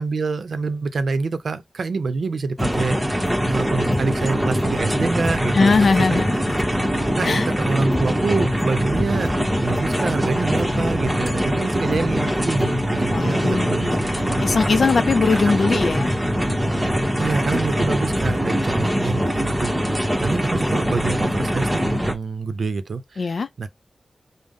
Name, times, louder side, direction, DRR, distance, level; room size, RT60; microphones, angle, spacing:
voice 1, 0.0-5.7 6.1-6.2 7.2-14.3 17.2-23.7, right 4 dB, 90° right, 0.6 m, -26 dB
sound 1, 2.6-4.8 5.1-12.8 13.1-13.2, left 1 dB, 20° left, 0.4 m, -35 dB
sound 2, 2.6-22.1, equal, 10° right, 0.9 m, -22 dB
voice 2, 5.5-6.6 7.2-7.5 7.8-7.9 13.1-16.1 23.2-23.5, left 4 dB, 75° left, 0.4 m, -21 dB
5.2 x 2.0 x 3.6 m
wide cardioid pair, 105°, 0 cm